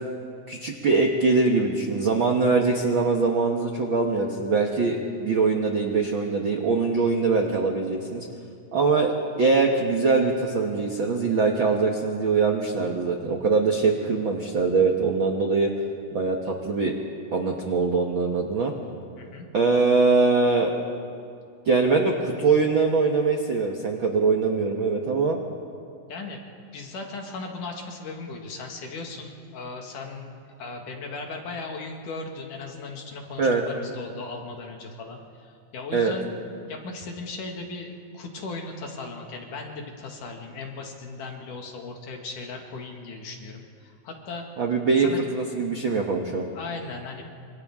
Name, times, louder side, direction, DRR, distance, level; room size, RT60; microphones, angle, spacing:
voice 1, 0.5-8.3 8.7-9.1 9.4-15.7 16.1-16.9 17.3-18.7 19.5-20.8 21.6-25.4 33.4-33.6 35.9-36.1 44.6-46.4, right 4 dB, 60° right, 1 dB, 1.3 m, -22 dB
voice 2, 19.2-19.5 26.1-26.4 26.7-30.3 30.6-36.3 36.7-44.5 45.0-45.2 46.5-47.2, left 3 dB, 65° left, 1 dB, 3.4 m, -37 dB
27.5 x 26.5 x 3.7 m, 2.4 s
omnidirectional pair, 4.1 m